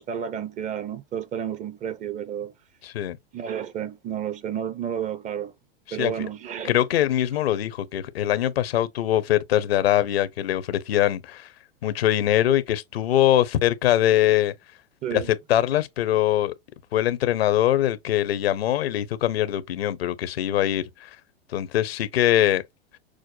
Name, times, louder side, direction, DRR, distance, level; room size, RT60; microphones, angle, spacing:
voice 1, 0.0-2.5 3.3-5.5 5.9-6.7 7.5-7.6 15.0-15.3, right 9 dB, 25° right, 0.5 m, -31 dB
voice 2, 2.8-3.2 5.9-6.1 6.6-11.5 11.8-14.5 15.1-16.5 16.9-21.1 21.5-22.6, left 12 dB, 85° left, 0.7 m, -22 dB
6.2 x 2.2 x 2.5 m
hypercardioid pair, 120°, 30 cm